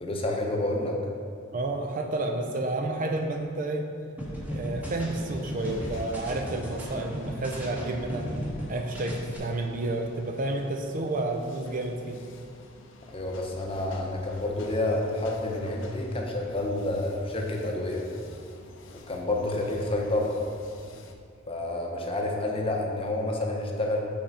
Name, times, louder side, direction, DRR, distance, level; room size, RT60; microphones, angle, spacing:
voice 1, 0.0-1.0 13.1-18.1 19.1-20.4 21.5-24.0, left 1 dB, 30° left, 0 dB, 0.8 m, -29 dB
voice 2, 1.5-3.9 4.5-8.3 8.7-12.2 19.7-19.8, right 2 dB, 40° right, 4 dB, 0.5 m, -30 dB
sound 1, 4.2-8.7 8.9-9.4, equal, 10° right, 1.2 m, -35 dB
sound 2, 5.1-21.1, left 2 dB, 65° left, 0.6 m, -50 dB
5.8 x 4.2 x 5.4 m, 2.3 s
head